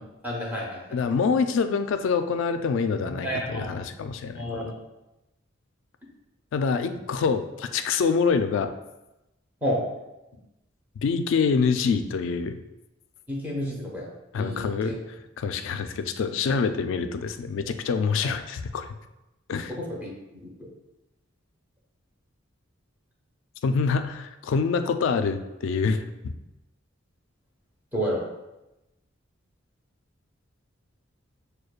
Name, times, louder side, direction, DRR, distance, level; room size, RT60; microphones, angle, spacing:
voice 1, 0.2-1.0 3.0-3.7 4.4-4.7 9.6-9.8 13.3-14.1 14.4-15.0 19.8-20.1 20.4-20.5 27.9-28.2, equal, 10° right, -4 dB, 0.8 m, -30 dB
voice 2, 0.9-4.8 6.5-8.7 11.0-12.6 14.3-15.0 15.4-18.9 19.5-19.7 23.6-26.3, left 5 dB, 65° left, 8 dB, 0.3 m, -26 dB
6.3 x 2.2 x 2.4 m, 0.97 s
head